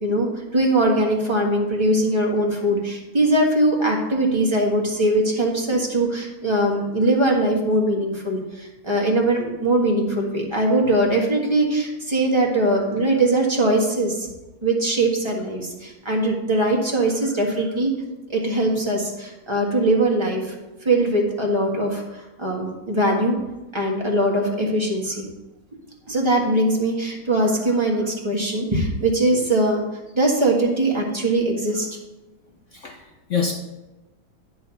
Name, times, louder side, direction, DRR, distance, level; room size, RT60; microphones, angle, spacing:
voice 1, 0.0-14.3 14.6-17.9 18.3-20.5 20.8-23.4 23.7-25.3 26.1-29.8 30.1-31.9, right 1 dB, 15° right, -1 dB, 1.3 m, -21 dB
voice 2, 32.7-33.5, left 6 dB, 70° left, 2 dB, 0.7 m, -26 dB
11.0 x 4.0 x 5.7 m, 1.0 s
omnidirectional pair, 2.1 m